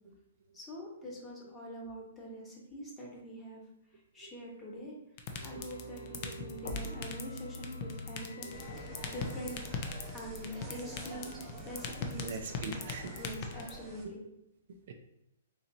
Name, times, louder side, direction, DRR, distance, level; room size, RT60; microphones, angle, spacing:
voice 1, 0.5-3.6 4.1-4.9 5.4-9.7 10.1-11.3 11.6-12.4 13.2-14.2, equal, 10° left, -3 dB, 1.0 m, -44 dB
sound 1, 5.2-13.7, left 8 dB, 40° left, 0.5 m, -38 dB
sound 2, 5.3-9.7 10.1-10.2, equal, 90° left, 1.2 m, -45 dB
Insect, 8.5-14.1, right 2 dB, 15° right, 0.8 m, -47 dB
voice 2, 12.2-13.2 14.7-14.9, right 4 dB, 55° right, 5 dB, 0.4 m, -44 dB
4.0 x 2.9 x 2.6 m, 0.83 s
hypercardioid pair, 145°, 0 cm